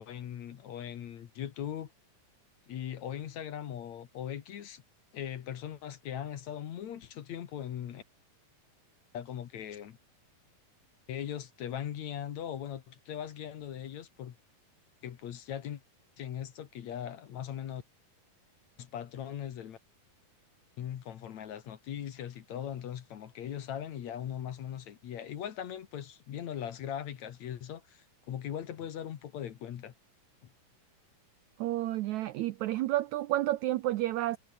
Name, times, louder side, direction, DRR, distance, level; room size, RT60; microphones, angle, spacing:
voice 1, 0.0-1.9 2.7-4.8 5.1-8.0 9.1-10.0 11.1-14.4 15.0-15.8 16.2-17.8 18.8-19.8 20.8-29.9, left 10 dB, 60° left, 2.5 m, -39 dB
voice 2, 31.6-34.4, right 15 dB, 85° right, 1.6 m, -30 dB
omnidirectional pair, 4.1 m